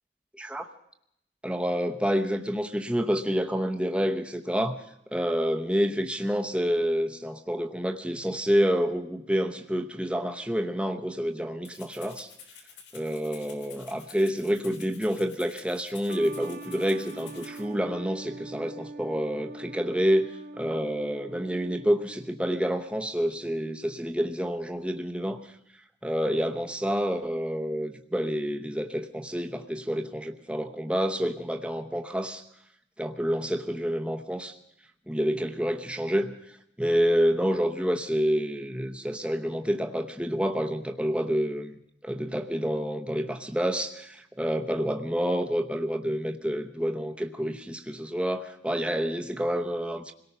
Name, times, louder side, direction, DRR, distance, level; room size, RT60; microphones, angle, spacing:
voice 1, 0.4-0.7 1.4-4.8 5.1-12.3 12.9-25.4 26.0-32.4 33.0-34.5 35.1-36.3 36.8-50.1, equal, 5° right, 5 dB, 0.8 m, -28 dB
Rattle (instrument), 11.6-17.6, left 7 dB, 80° left, 3.5 m, -50 dB
sound 1, 16.1-22.4, right 2 dB, 50° right, 1.0 m, -43 dB
26.0 x 18.0 x 5.6 m, 0.77 s
head